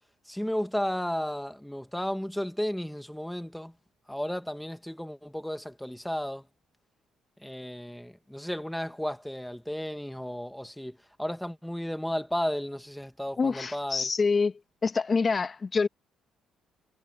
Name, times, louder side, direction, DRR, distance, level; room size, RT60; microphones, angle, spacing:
voice 1, 0.3-3.7 4.1-6.5 7.4-14.1, equal, 5° left, 2.0 m, -33 dB
voice 2, 13.4-14.5 14.8-15.9, left 4 dB, 35° left, 1.9 m, -26 dB
supercardioid pair, 75°, 0 cm